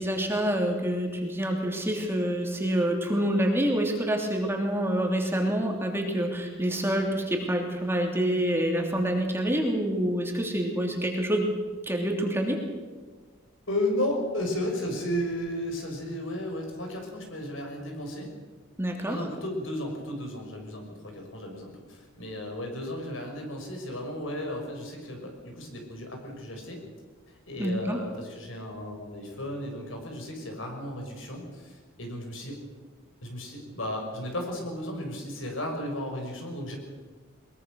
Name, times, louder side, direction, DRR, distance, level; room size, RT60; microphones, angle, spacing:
voice 1, 0.0-11.4 11.9-12.6 18.8-19.2 27.6-28.0, right 1 dB, 10° right, 1 dB, 3.1 m, -27 dB
voice 2, 13.7-18.3 19.1-26.8 27.3-32.6 33.2-36.8, left 1 dB, 70° left, 2 dB, 5.9 m, -34 dB
22.0 x 22.0 x 6.4 m, 1.4 s
head